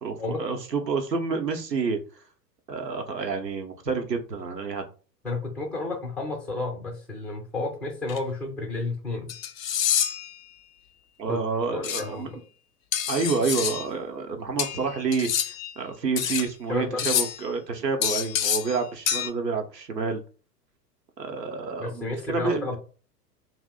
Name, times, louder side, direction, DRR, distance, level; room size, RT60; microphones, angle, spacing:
voice 1, 0.0-2.2 2.7-4.8 11.2-12.3 13.1-20.2 21.2-22.8, right 4 dB, 85° right, 5 dB, 0.8 m, -29 dB
voice 2, 5.2-9.3 11.3-11.4 11.7-12.4 16.7-17.0 21.8-22.8, left 2 dB, ahead, 0 dB, 0.4 m, -31 dB
sound 1, 8.1-8.2 9.3-10.3 11.8-12.0 12.9-13.9 14.6-15.7 16.2-16.5 17.0-17.4 18.0-18.8 19.1-19.3, left 9 dB, 55° left, 0.5 m, -27 dB
2.6 x 2.0 x 3.7 m, 0.37 s
figure-of-eight pair, 100°, 49 cm